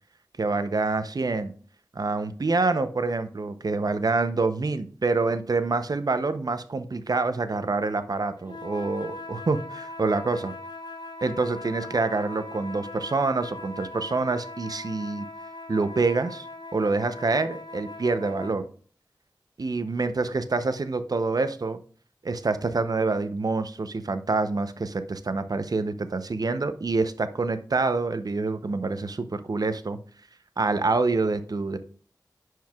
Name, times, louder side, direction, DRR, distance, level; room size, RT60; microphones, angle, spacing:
voice 1, 0.4-1.5 1.9-10.5 11.2-15.3 15.7-16.5 16.7-18.6 19.6-21.8 22.2-30.0 30.6-31.8, right 3 dB, 60° right, 11 dB, 0.6 m, -26 dB
sound 1, 8.4-18.6, left 2 dB, 75° left, 0.7 m, -40 dB
10.5 x 4.6 x 2.3 m, 0.42 s
wide cardioid pair, 60°, 7 cm